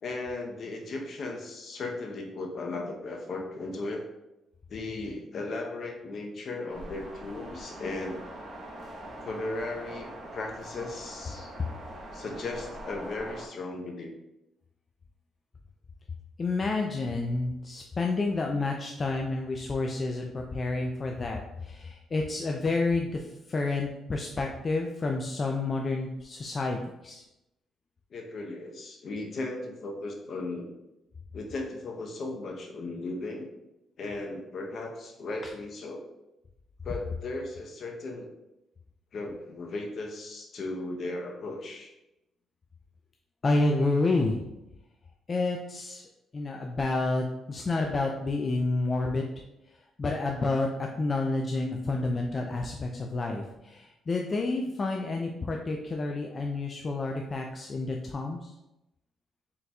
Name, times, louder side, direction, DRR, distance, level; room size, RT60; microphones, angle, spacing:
voice 1, 0.0-4.1 4.7-8.2 9.2-11.5 12.1-14.1 28.1-30.7 31.3-33.5 34.0-36.0 36.8-38.3 39.1-41.9, left 2 dB, 55° left, 2 dB, 0.7 m, -36 dB
sound 1, 6.7-13.5, right 1 dB, 45° right, 1.0 m, -43 dB
voice 2, 16.4-27.2 43.4-44.4 45.3-46.1 46.3-49.3 50.0-58.5, left 3 dB, 35° left, 1 dB, 0.4 m, -29 dB
4.1 x 3.8 x 2.3 m, 0.91 s
cardioid pair, 90°, 0 cm